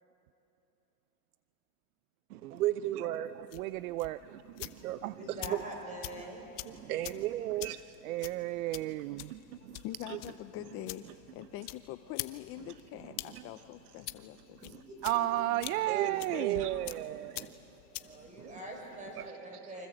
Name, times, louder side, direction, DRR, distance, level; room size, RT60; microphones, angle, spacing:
voice 1, 2.3-3.5 4.6-5.6 6.6-7.8 9.2-9.8 10.1-10.2 12.6-12.7 13.3-13.4 14.6-14.8 15.9-17.6 18.1-18.5 19.2-19.3, right 14 dB, 85° right, 1.0 m, -36 dB
sound 1, 3.4-19.3, left 18 dB, 55° left, 1.1 m, -47 dB
voice 2, 3.5-4.2 5.0-5.2 8.0-9.3 15.0-16.6, right 16 dB, 65° right, 0.6 m, -32 dB
voice 3, 5.1-6.4 14.6-15.2 17.9-19.9, right 1 dB, 15° right, 6.7 m, -44 dB
voice 4, 9.8-14.8 15.1-15.3 16.0-16.7, left 14 dB, 30° left, 0.6 m, -44 dB
29.0 x 25.0 x 7.9 m
supercardioid pair, 145°, 44 cm